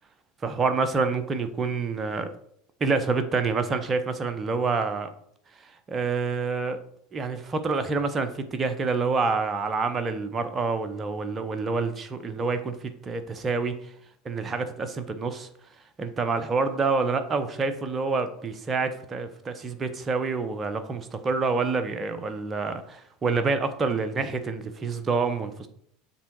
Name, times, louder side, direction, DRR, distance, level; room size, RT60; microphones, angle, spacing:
voice 1, 0.4-2.3 2.8-5.1 5.9-6.8 7.1-13.7 14.2-15.5 16.0-25.7, right 4 dB, 30° right, 9 dB, 0.9 m, -27 dB
7.2 x 3.6 x 4.6 m, 0.67 s
figure-of-eight pair, 75°, 0 cm